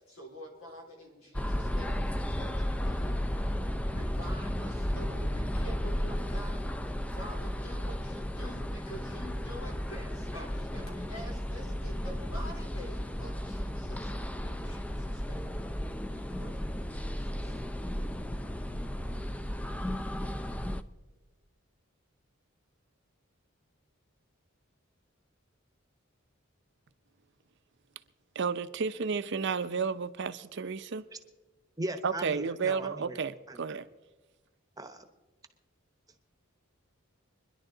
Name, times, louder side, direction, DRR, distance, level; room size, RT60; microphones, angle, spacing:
voice 1, 0.0-2.0 2.3-3.3 3.9-14.1 14.4-15.6 16.1-16.6 17.1-17.6, equal, 90° left, 3.5 m, -47 dB
sound 1, 1.3-20.8, equal, 5° left, 0.4 m, -34 dB
voice 2, 28.3-31.1 32.0-33.9, right 5 dB, 60° right, 0.6 m, -32 dB
voice 3, 31.8-33.2 33.5-33.6 34.8-35.1, right 1 dB, 20° right, 0.9 m, -38 dB
25.5 x 11.0 x 3.9 m
head